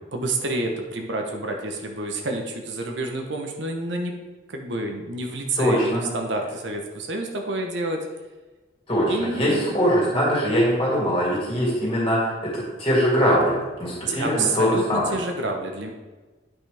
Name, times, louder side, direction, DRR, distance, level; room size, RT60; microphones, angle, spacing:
voice 1, 0.1-4.1 4.5-8.0 9.1-9.8 14.1-15.9, right 2 dB, 70° right, 3 dB, 1.0 m, -28 dB
voice 2, 5.6-6.0 8.9-15.1, equal, 30° left, -6 dB, 2.5 m, -22 dB
9.1 x 5.7 x 3.4 m, 1.2 s
head